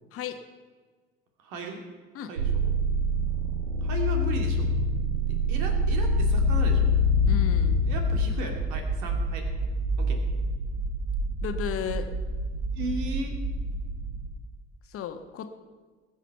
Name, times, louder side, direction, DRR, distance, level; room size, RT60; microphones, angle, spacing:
voice 1, 1.4-1.8 2.3-2.8 3.8-4.7 5.3-6.9 7.8-9.5 10.0-10.2 12.7-13.4, right 3 dB, 60° right, 4 dB, 2.5 m, -35 dB
sound 1, 2.4-8.3, left 2 dB, 80° right, 1.4 m, -24 dB
sound 2, 7.2-14.3, right 2 dB, 25° right, 2.4 m, -30 dB
voice 2, 7.3-7.8 11.4-12.1 14.9-15.5, left 9 dB, 40° left, 7 dB, 1.2 m, -34 dB
20.5 x 7.3 x 5.8 m, 1.4 s
figure-of-eight pair, 60°, 34 cm